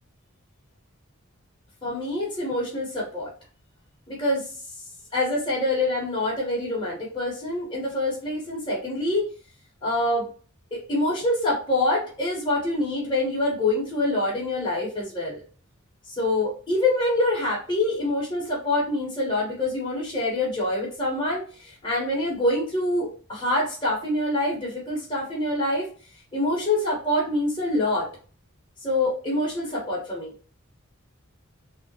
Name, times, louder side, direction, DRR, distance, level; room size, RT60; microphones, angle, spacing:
voice 1, 1.8-3.3 4.1-4.5 5.1-9.3 9.8-10.3 10.7-15.4 16.1-25.9 26.3-28.1 28.8-30.3, left 1 dB, 25° left, -5 dB, 1.4 m, -25 dB
3.7 x 3.0 x 2.9 m, 0.40 s
head